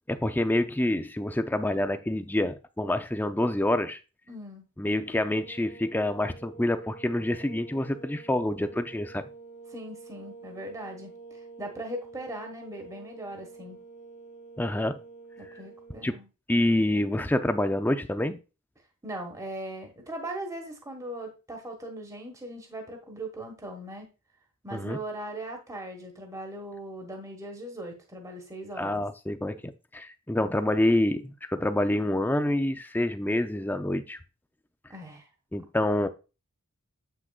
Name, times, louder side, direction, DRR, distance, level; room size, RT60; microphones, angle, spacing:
voice 1, 0.1-4.0 4.8-9.2 14.6-15.0 16.0-16.1 16.5-18.4 24.7-25.0 28.8-34.2 35.5-36.1, left 1 dB, 10° left, 0.4 m, -27 dB
voice 2, 4.3-4.7 9.7-13.8 15.4-16.2 19.0-24.1 24.6-29.0 30.4-30.5 34.9-35.3, right 1 dB, 15° right, 1.4 m, -39 dB
sound 1, 5.0-16.1, right 4 dB, 40° left, 1.0 m, -48 dB
8.0 x 6.1 x 2.3 m
head